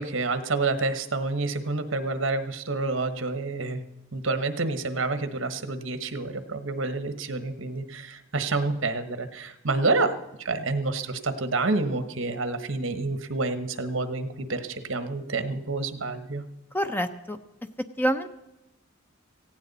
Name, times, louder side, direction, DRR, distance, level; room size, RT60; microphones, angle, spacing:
voice 1, 0.0-3.8 4.1-16.4, right 3 dB, 65° right, 10 dB, 1.2 m, -28 dB
voice 2, 16.7-17.4 18.0-18.3, equal, 10° left, 9 dB, 0.6 m, -26 dB
17.5 x 16.0 x 4.1 m, 0.95 s
head